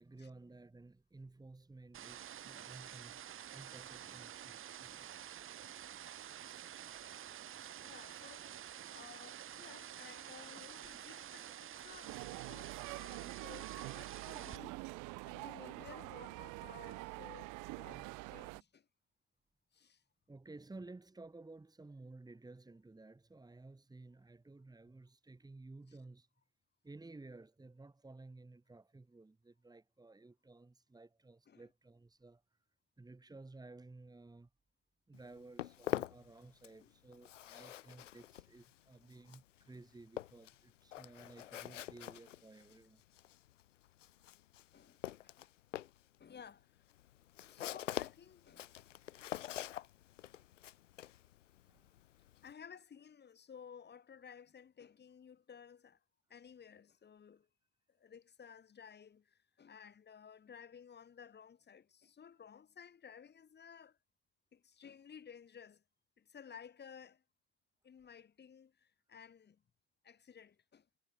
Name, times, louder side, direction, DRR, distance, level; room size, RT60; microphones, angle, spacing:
voice 1, 0.0-3.2 3.5-5.3 5.6-5.8 7.9-8.0 10.5-10.6 20.3-26.3 26.8-32.6 33.0-34.5 35.1-43.0 45.2-45.3 51.7-52.3, right 2 dB, 10° right, 6.0 m, -55 dB
sound 1, 1.9-14.6, right 10 dB, 35° right, 2.4 m, -49 dB
voice 2, 7.8-8.6 8.9-14.8 15.2-18.9 19.7-20.0 31.5-31.7 36.8-36.9 41.4-41.5 44.7-45.5 46.2-46.8 47.5-48.7 52.4-56.0 56.3-57.5 57.9-64.0 64.5-65.8 66.2-67.2 67.8-69.6 70.0-70.9, left 7 dB, 30° left, 5.5 m, -56 dB
sound 2, 12.0-18.6, right 26 dB, 55° right, 2.6 m, -46 dB
Walk footsteps, 35.1-36.9 37.1-52.5, left 13 dB, 80° left, 4.2 m, -45 dB
hypercardioid pair, 90°, 37 cm